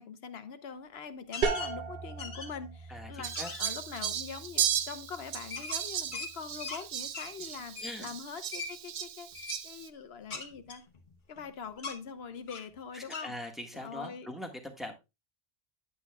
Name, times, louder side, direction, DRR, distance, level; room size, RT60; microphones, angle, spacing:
voice 1, 0.0-10.8 11.3-13.3 13.7-14.3, left 6 dB, 75° left, 1.1 m, -43 dB
sound 1, 1.3-1.7 2.2-2.7 3.1-3.7 5.5-6.8 7.1-7.3 7.8-8.0 8.5-8.7 9.3-9.6 10.3-11.4 11.8-12.0 12.5-12.7 13.1-13.3, left 4 dB, 50° left, 1.2 m, -40 dB
sound 2, 1.4-7.0, right 5 dB, 60° right, 1.1 m, -39 dB
voice 2, 2.9-3.5 7.8-8.1 12.9-14.9, left 1 dB, ahead, 1.6 m, -41 dB
Fowl, 3.2-9.9, right 10 dB, 90° right, 0.9 m, -36 dB
10.0 x 8.2 x 2.3 m
omnidirectional pair, 1.1 m